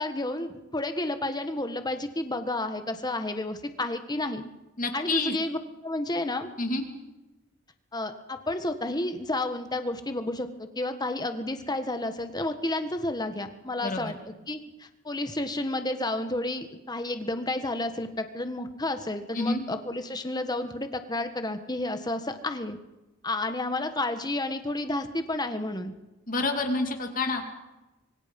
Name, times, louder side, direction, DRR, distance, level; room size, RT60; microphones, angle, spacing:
voice 1, 0.0-4.4 4.9-6.5 7.9-14.1 14.5-22.8 23.2-25.9, left 2 dB, 20° left, 8 dB, 1.6 m, -31 dB
voice 2, 4.8-5.3 6.6-6.8 13.8-14.1 19.3-19.6 26.3-27.6, left 2 dB, 40° left, 4 dB, 2.6 m, -28 dB
25.5 x 24.0 x 5.4 m, 1.0 s
head